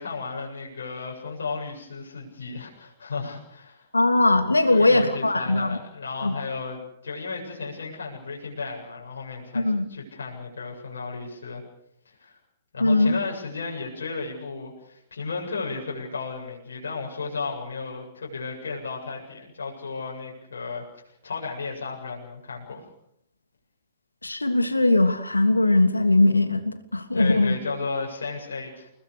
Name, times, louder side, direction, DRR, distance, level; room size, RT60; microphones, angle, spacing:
voice 1, 0.0-3.9 4.7-11.6 12.2-12.3 12.7-20.8 21.2-22.9 27.1-28.9, left 4 dB, 70° left, -2 dB, 7.8 m, -34 dB
voice 2, 3.9-5.8 6.2-6.3 9.5-9.9 12.8-13.2 24.2-27.5, left 2 dB, 85° left, 7 dB, 3.0 m, -20 dB
30.0 x 20.0 x 6.6 m, 0.75 s
figure-of-eight pair, 110°, 0 cm